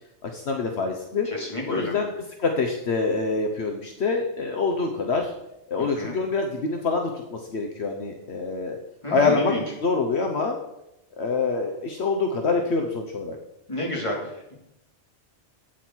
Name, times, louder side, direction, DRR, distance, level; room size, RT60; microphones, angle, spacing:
voice 1, 0.3-1.3 1.7-2.1 2.4-5.3 5.7-8.8 9.1-9.5 9.8-10.6 11.2-13.4, left 4 dB, 70° left, 3 dB, 1.3 m, -25 dB
voice 2, 1.2-2.0 5.8-6.2 9.0-9.6 13.7-14.5, left 1 dB, 25° left, -2 dB, 2.8 m, -30 dB
11.5 x 9.0 x 4.6 m, 0.87 s
omnidirectional pair, 1.2 m